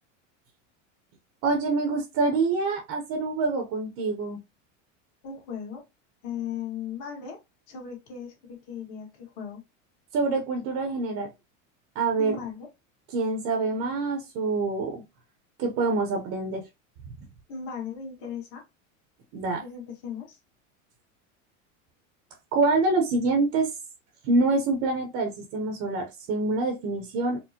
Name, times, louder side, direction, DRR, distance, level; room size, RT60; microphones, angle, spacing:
voice 1, 1.4-4.4 10.1-11.3 11.9-12.4 13.1-15.0 15.6-16.7 19.3-19.6 22.5-23.7 24.2-27.4, right 3 dB, 40° right, 0.7 m, -26 dB
voice 2, 5.2-5.8 6.2-7.4 7.7-9.6 12.2-12.7 17.5-18.6 19.6-20.4, left 7 dB, 50° left, 1.7 m, -37 dB
4.3 x 2.0 x 2.8 m
supercardioid pair, 150°, 39 cm